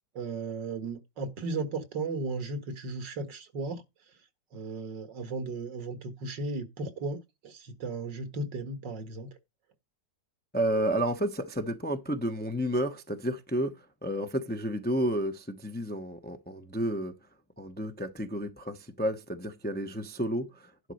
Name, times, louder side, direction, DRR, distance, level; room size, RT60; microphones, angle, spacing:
voice 1, 0.2-3.8 4.5-7.2 7.4-9.3, right 3 dB, 75° right, 2.3 m, -35 dB
voice 2, 10.5-17.1 17.6-20.9, equal, 10° left, 0.6 m, -31 dB
11.0 x 4.1 x 6.4 m
omnidirectional pair, 1.9 m